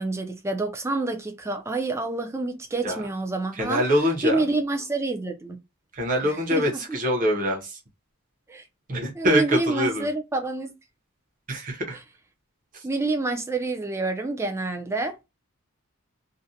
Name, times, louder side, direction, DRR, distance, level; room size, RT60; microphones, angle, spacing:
voice 1, 0.0-3.8 4.2-5.6 6.2-7.0 8.5-8.6 9.1-10.7 12.8-15.2, right 3 dB, 10° right, 0.3 m, -28 dB
voice 2, 3.5-4.4 5.9-7.8 8.9-10.1 11.5-12.0 12.7-12.8, equal, 35° right, 0.7 m, -24 dB
2.5 x 2.1 x 2.6 m
head